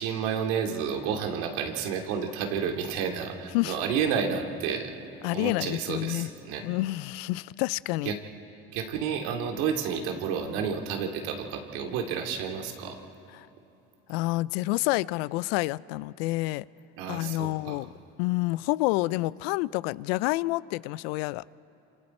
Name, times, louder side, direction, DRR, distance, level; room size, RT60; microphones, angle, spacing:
voice 1, 0.0-4.9 5.3-6.7 8.1-8.2 8.7-13.0 17.0-17.8, right 7 dB, 80° right, 2.5 m, -30 dB
voice 2, 5.2-6.3 6.6-8.1 13.4-13.5 14.1-16.7 17.1-17.9 18.2-21.4, left 20 dB, 80° left, 0.5 m, -28 dB
28.5 x 26.5 x 4.4 m
supercardioid pair, 80°, 30 cm